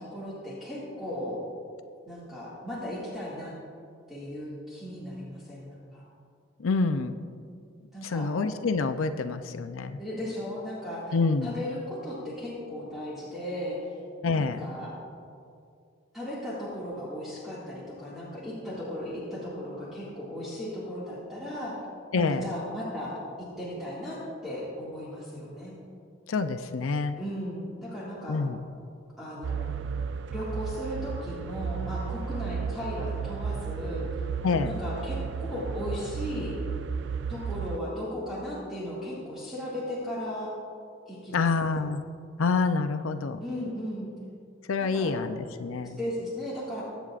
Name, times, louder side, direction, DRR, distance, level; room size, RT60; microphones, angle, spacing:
voice 1, 0.0-1.4 2.1-3.5 4.1-6.0 7.9-8.3 10.0-11.2 11.4-14.0 14.3-15.0 16.1-21.8 22.1-25.7 27.2-28.4 29.2-29.9 30.3-34.2 34.6-36.6 37.3-40.5 41.1-41.8 43.4-44.1 44.8-45.3 45.8-46.8, left 1 dB, ahead, -10 dB, 2.0 m, -36 dB
voice 2, 6.6-7.1 8.0-10.0 11.1-11.5 14.2-14.6 22.1-22.5 26.3-27.2 28.3-28.6 34.4-34.7 41.3-42.0 42.4-43.4 44.7-46.0, left 4 dB, 85° left, 9 dB, 0.5 m, -27 dB
sound 1, 29.4-37.8, right 6 dB, 60° right, 0.3 m, -33 dB
22.0 x 8.2 x 2.5 m, 2.3 s
head